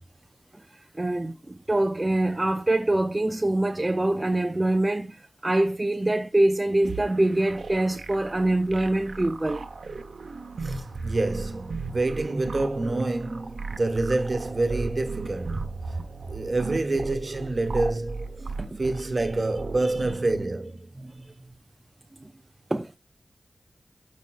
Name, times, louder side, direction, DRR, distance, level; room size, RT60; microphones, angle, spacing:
voice 1, 0.9-9.7 18.6-18.8 21.0-21.3 22.2-22.3 22.7-23.0, right 1 dB, 25° right, 0.7 m, -24 dB
sound 1, 6.8-20.5, right 4 dB, 80° right, 1.1 m, -36 dB
voice 2, 10.6-16.0 16.3-18.3 18.8-20.9, right 2 dB, 50° right, 1.4 m, -27 dB
12.5 x 5.5 x 2.5 m
wide cardioid pair, 60°, 0 cm